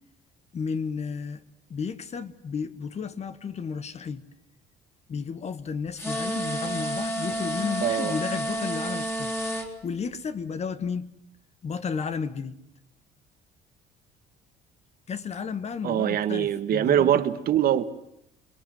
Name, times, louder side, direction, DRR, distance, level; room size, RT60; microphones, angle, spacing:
voice 1, 0.5-1.4 1.7-4.2 5.1-9.3 9.8-11.1 11.6-12.6 15.1-17.2, left 6 dB, 40° left, 1.7 m, -33 dB
sound 1, 6.0-9.7, right 1 dB, 15° left, 3.7 m, -30 dB
voice 2, 7.8-8.1 15.8-17.9, right 10 dB, 60° right, 1.6 m, -23 dB
28.5 x 22.0 x 7.8 m
cardioid pair, 110°, 17 cm